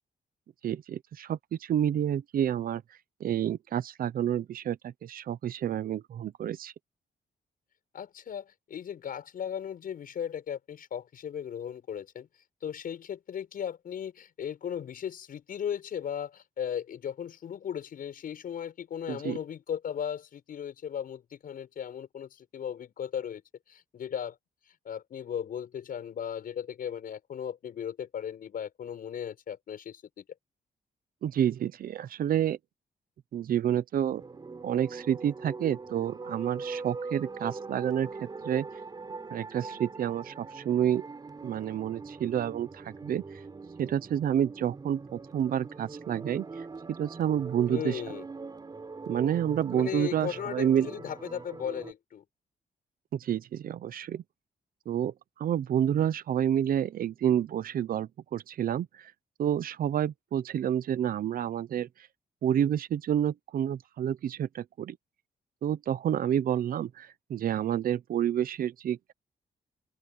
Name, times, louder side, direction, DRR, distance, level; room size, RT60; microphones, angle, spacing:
voice 1, 0.6-2.8 3.2-6.7 19.1-19.4 31.2-32.6 33.3-34.2 34.6-38.7 39.3-41.0 41.4-43.2 43.8-46.7 47.0-48.0 49.1-50.9 53.1-54.2 54.9-59.1 59.4-61.9 62.4-65.0 65.6-69.1, right 10 dB, 65° right, 0.7 m, -29 dB
voice 2, 7.9-12.3 12.6-23.4 23.7-24.4 24.8-30.2 47.7-48.2 49.7-52.2, left 8 dB, 65° left, 6.7 m, -36 dB
sound 1, 34.1-51.9, right 4 dB, 25° right, 5.2 m, -42 dB
open air
wide cardioid pair, 170°, 16 cm